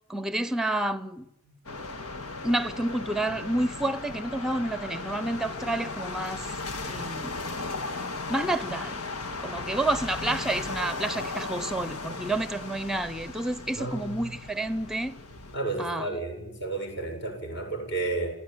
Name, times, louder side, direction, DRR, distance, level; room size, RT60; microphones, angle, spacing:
voice 1, 0.1-1.3 2.4-6.5 6.9-7.4 8.3-9.0 9.4-15.2 15.8-16.1, right 1 dB, ahead, 0.8 m, -29 dB
sound 1, 1.6-15.6, left 3 dB, 85° left, 2.0 m, -36 dB
voice 2, 13.8-14.2 15.5-18.3, right 2 dB, 50° left, 7.3 m, -32 dB
26.5 x 16.0 x 9.7 m
head